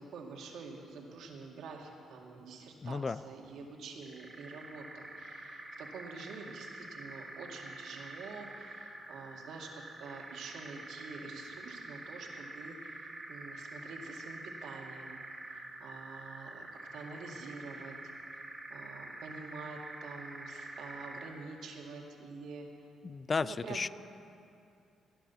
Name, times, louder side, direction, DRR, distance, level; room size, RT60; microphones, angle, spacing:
voice 1, 0.0-15.2 15.5-18.0 18.3-18.4 18.7-22.9 23.4-23.8, right 4 dB, 75° right, 0 dB, 2.1 m, -47 dB
voice 2, 2.8-3.2 23.0-23.9, left 4 dB, 35° left, 17 dB, 0.4 m, -33 dB
sound 1, 4.0-21.4, right 2 dB, 15° right, 2.4 m, -47 dB
16.5 x 10.0 x 7.0 m, 2.5 s
cardioid pair, 90°, 0 cm